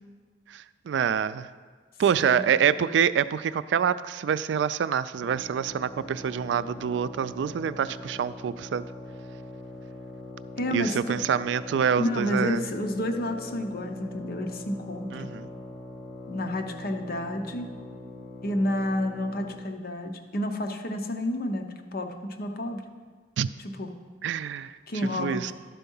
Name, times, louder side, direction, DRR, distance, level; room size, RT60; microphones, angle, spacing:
voice 1, 0.5-1.5 2.0-8.9 10.7-12.6 15.1-15.5 23.4-23.5 24.2-25.5, right 7 dB, 80° right, 15 dB, 0.3 m, -26 dB
sound 1, 5.1-19.7, left 1 dB, 25° left, 3.0 m, -42 dB
voice 2, 10.6-11.2 12.0-15.3 16.3-17.7 18.4-22.8 23.8-23.9 24.9-25.5, left 1 dB, 55° left, 5 dB, 0.8 m, -30 dB
11.5 x 4.5 x 5.4 m, 1.5 s
head